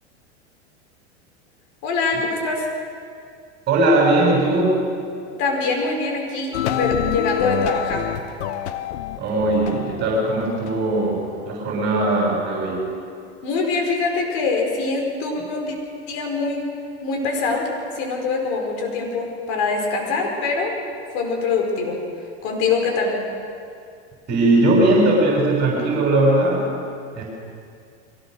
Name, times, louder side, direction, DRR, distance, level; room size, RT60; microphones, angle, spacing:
voice 1, 1.8-2.7 5.4-8.1 13.4-15.8 16.1-16.6 17.0-17.7 18.0-20.8 21.1-22.0 22.4-23.2, left 4 dB, 55° left, 1 dB, 5.3 m, -23 dB
voice 2, 3.7-4.8 9.2-12.9 24.3-26.7 27.1-27.2, right 2 dB, 30° right, -3 dB, 6.5 m, -19 dB
sound 1, 6.5-11.5, left 10 dB, 75° left, 1.1 m, -28 dB
23.0 x 17.5 x 6.5 m, 2.3 s
hypercardioid pair, 100°, 35 cm